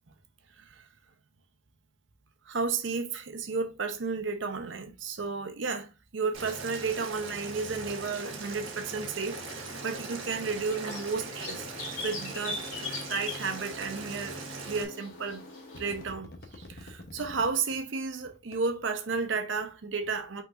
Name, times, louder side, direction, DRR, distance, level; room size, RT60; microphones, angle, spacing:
voice 1, 2.5-11.7 12.0-14.4 14.6-15.4 15.8-20.4, right 4 dB, 70° right, 0.7 m, -33 dB
Boiling, 6.3-14.8, right 3 dB, 85° right, 1.3 m, -40 dB
sound 1, 9.3-16.1, left 3 dB, 85° left, 2.0 m, -41 dB
sound 2, 13.7-13.8 14.7-14.8 15.3-15.5 15.7-17.5 18.3-18.5, left 1 dB, 50° left, 0.8 m, -46 dB
5.5 x 3.9 x 2.5 m
head